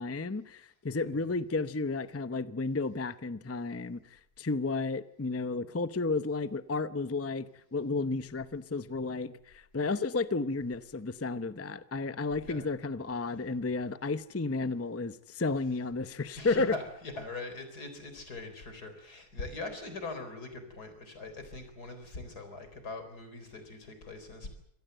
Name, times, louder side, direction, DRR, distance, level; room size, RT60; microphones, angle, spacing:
voice 1, 0.0-16.7, left 3 dB, 15° left, 0.4 m, -32 dB
voice 2, 16.4-24.5, left 3 dB, 85° left, 4.6 m, -42 dB
26.0 x 18.0 x 7.9 m
omnidirectional pair, 1.6 m